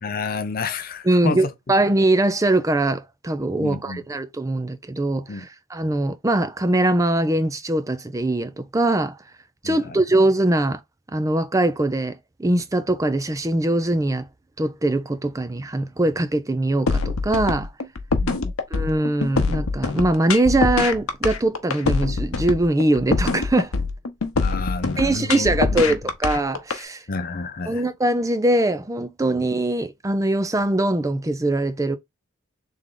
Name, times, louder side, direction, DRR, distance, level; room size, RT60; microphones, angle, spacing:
voice 1, 0.0-1.4 3.6-4.0 5.3-5.5 9.6-10.0 18.1-18.5 24.4-25.5 27.1-27.8, left 4 dB, 45° left, 0.5 m, -30 dB
voice 2, 1.0-9.2 9.6-10.8 11.1-14.3 14.6-17.7 18.7-23.7 25.0-27.0 27.7-32.0, right 1 dB, 15° right, 0.4 m, -22 dB
sound 1, 16.9-26.8, left 3 dB, 90° left, 0.8 m, -24 dB
3.6 x 3.4 x 3.7 m
head